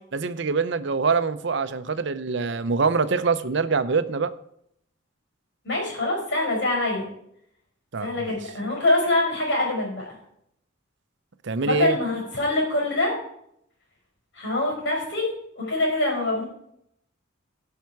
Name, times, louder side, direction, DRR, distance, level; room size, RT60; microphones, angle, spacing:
voice 1, 0.1-4.3 7.9-8.4 11.4-12.0, right 4 dB, 60° right, 13 dB, 0.7 m, -24 dB
voice 2, 5.6-7.1 8.0-10.1 11.6-13.1 14.4-15.3 15.6-16.5, left 2 dB, 60° left, 0 dB, 4.8 m, -24 dB
16.5 x 5.7 x 4.6 m, 0.73 s
head